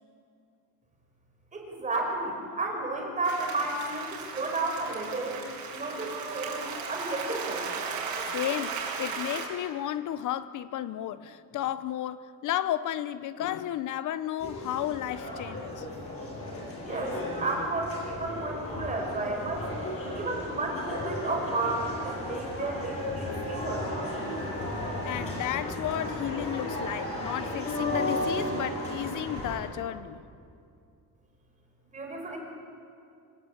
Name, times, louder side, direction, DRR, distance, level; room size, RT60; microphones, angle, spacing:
voice 1, 1.5-5.4 5.7-6.6 6.9-7.7 16.8-19.7 20.1-23.8 31.9-32.4, right 2 dB, 20° right, 4.9 m, -32 dB
Applause, 3.2-9.4, right 5 dB, 80° right, 6.3 m, -36 dB
voice 2, 8.3-15.9 25.0-30.2, left 12 dB, 60° left, 0.9 m, -33 dB
sound 1, 14.4-29.5, left 1 dB, 40° left, 7.7 m, -34 dB
26.0 x 25.5 x 8.5 m
cardioid pair, 175°, 35 cm